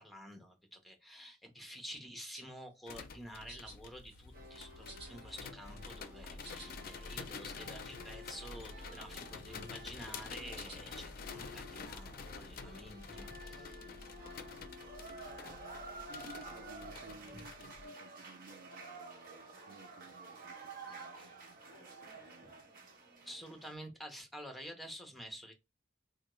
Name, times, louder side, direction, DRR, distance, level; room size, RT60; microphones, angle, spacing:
voice 1, 0.0-13.9 17.3-17.5 21.2-21.3 23.2-25.5, equal, ahead, 0.8 m, -50 dB
sound 1, 2.3-2.6 3.5-3.8 4.1-4.6 4.8-5.9 6.2-6.7 7.1-7.2 7.3-7.4 7.8-8.2 8.5-8.9 9.4-10.0 10.6-10.8 11.6-11.8, right 2 dB, 35° right, 1.5 m, -54 dB
sound 2, 2.9-17.8, left 4 dB, 55° left, 0.4 m, -48 dB
sound 3, 4.3-23.7, right 2 dB, 55° right, 1.2 m, -51 dB
voice 2, 15.0-15.6 16.1-22.7, right 2 dB, 70° right, 0.4 m, -57 dB
3.5 x 2.2 x 3.0 m
head